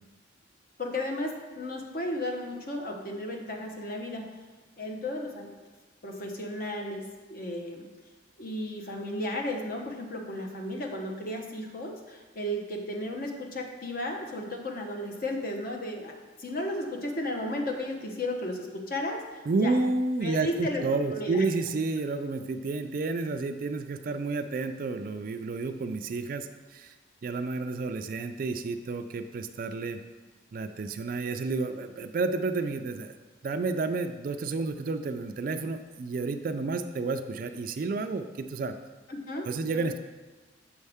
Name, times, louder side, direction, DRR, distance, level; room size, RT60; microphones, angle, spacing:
voice 1, 0.8-4.3 4.8-5.5 6.0-7.9 8.4-19.7 20.2-20.8 21.1-21.4 39.1-39.9, left 1 dB, 45° left, 1 dB, 0.9 m, -34 dB
voice 2, 19.5-26.9 27.2-30.0 30.5-33.2 33.4-38.8 39.5-40.0, right 3 dB, 45° right, 9 dB, 0.3 m, -30 dB
7.0 x 5.4 x 3.5 m, 1.3 s
head